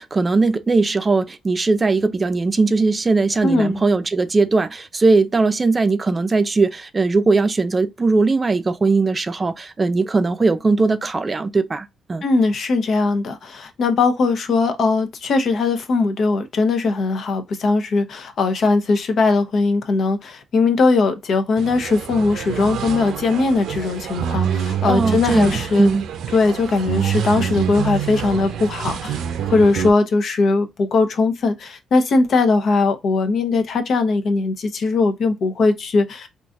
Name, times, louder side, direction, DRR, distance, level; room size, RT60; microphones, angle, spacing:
voice 1, 0.0-12.2 24.9-26.1, right 3 dB, 30° right, 0.5 m, -19 dB
voice 2, 3.4-3.8 12.2-25.9 26.3-36.3, left 3 dB, 60° left, 0.7 m, -19 dB
sound 1, 21.6-29.9, right 8 dB, 80° right, 0.6 m, -26 dB
3.8 x 2.6 x 2.4 m
cardioid pair, 90°, 0 cm